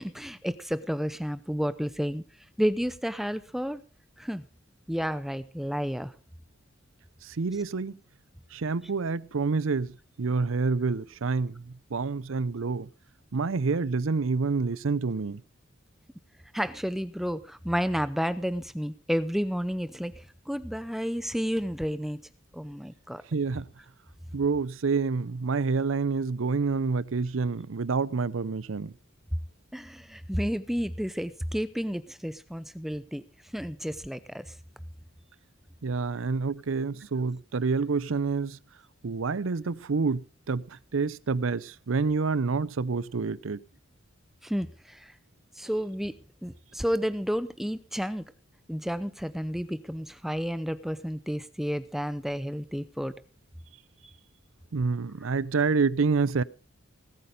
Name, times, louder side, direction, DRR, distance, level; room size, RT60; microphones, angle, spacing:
voice 1, 0.0-2.2 2.6-3.8 4.2-4.4 4.9-6.1 16.5-22.2 22.5-23.2 29.7-33.2 33.5-34.5 44.4-45.1 45.6-46.2 46.4-48.2 48.7-53.1, equal, ahead, 0.6 m, -31 dB
voice 2, 7.2-7.9 8.5-12.9 13.3-15.4 23.3-23.6 24.3-28.9 35.8-38.6 39.0-43.6 54.7-56.4, right 4 dB, 80° right, 0.6 m, -28 dB
19.0 x 8.7 x 5.1 m
head